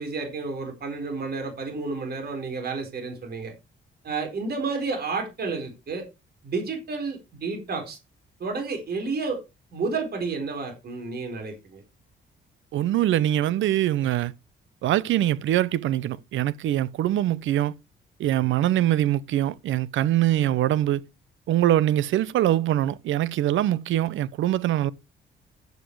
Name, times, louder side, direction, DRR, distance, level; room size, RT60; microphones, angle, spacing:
voice 1, 0.0-3.5 4.0-6.0 6.4-8.0 8.4-9.4 9.7-11.8, right 4 dB, 50° right, 4.3 m, -31 dB
voice 2, 12.7-14.3 14.8-17.7 18.2-21.0 21.5-24.9, right 13 dB, 75° right, 0.7 m, -23 dB
11.0 x 8.0 x 4.7 m
cardioid pair, 90°, 20 cm